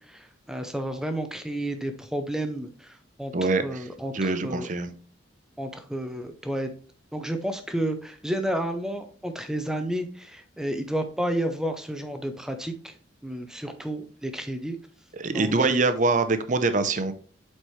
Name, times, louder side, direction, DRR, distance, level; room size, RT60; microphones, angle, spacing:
voice 1, 0.1-3.3 3.6-4.7 5.6-6.7 7.1-13.0 13.2-14.8 15.3-15.8, right 1 dB, 5° right, 7 dB, 0.5 m, -31 dB
voice 2, 3.3-3.8 4.1-4.9 15.2-17.1, right 3 dB, 40° right, 10 dB, 0.6 m, -24 dB
7.8 x 4.3 x 3.1 m, 0.41 s
head